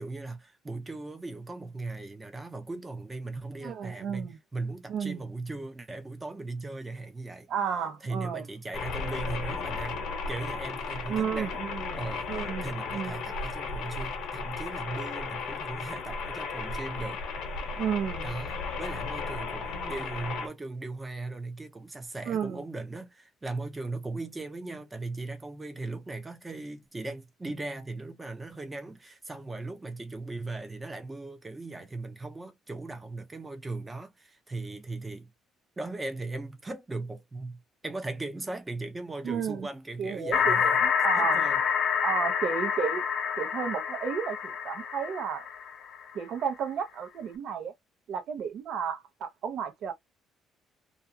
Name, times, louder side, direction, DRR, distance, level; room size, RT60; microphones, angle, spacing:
voice 1, 0.0-7.5 8.0-11.6 12.0-17.2 18.2-35.3 35.8-40.8 41.1-41.6, right 2 dB, 15° right, 0.7 m, -38 dB
voice 2, 3.6-4.4 4.9-5.2 7.5-8.5 11.1-12.0 12.3-13.2 17.8-18.3 22.3-22.6 39.2-39.7 40.0-41.5 42.0-43.0 43.4-44.4 44.6-45.5 46.1-47.7 48.1-49.9, right 7 dB, 60° right, 0.7 m, -32 dB
sound 1, 8.7-20.5, left 4 dB, 75° left, 0.9 m, -35 dB
sound 2, 40.3-46.0, left 7 dB, 50° left, 0.5 m, -27 dB
2.5 x 2.3 x 2.6 m
cardioid pair, 135°, 0 cm